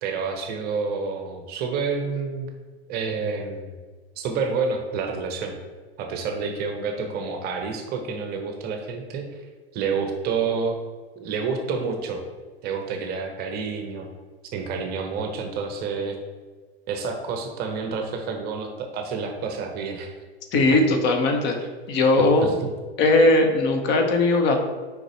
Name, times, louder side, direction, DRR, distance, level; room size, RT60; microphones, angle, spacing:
voice 1, 0.0-2.5 2.9-3.7 4.2-5.6 6.0-9.5 9.7-10.8 11.2-12.2 12.6-14.1 14.5-16.2 16.9-20.1 21.6-21.7 22.4-22.5, right 5 dB, 30° right, 4 dB, 0.9 m, -29 dB
voice 2, 20.5-21.6 21.9-22.5 23.0-24.6, left 2 dB, 35° left, 4 dB, 1.0 m, -19 dB
6.3 x 5.1 x 3.3 m, 1.4 s
hypercardioid pair, 105°, 32 cm